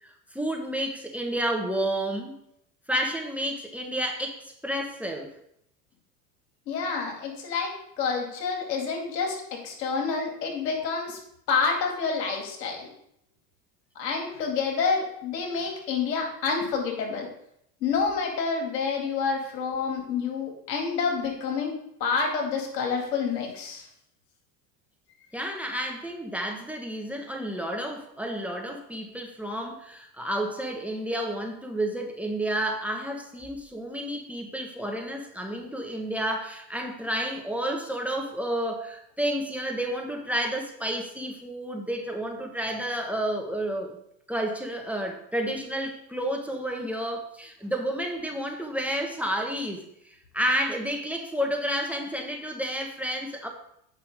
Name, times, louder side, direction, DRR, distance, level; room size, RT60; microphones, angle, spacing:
voice 1, 0.0-2.4 2.9-5.3 25.3-44.0 44.3-53.5, right 1 dB, 5° right, 3 dB, 1.4 m, -31 dB
voice 2, 6.7-11.2 11.5-12.9 14.0-17.3 17.8-23.9, left 5 dB, 80° left, 2 dB, 2.3 m, -28 dB
8.4 x 5.7 x 4.9 m, 0.75 s
hypercardioid pair, 85°, 48 cm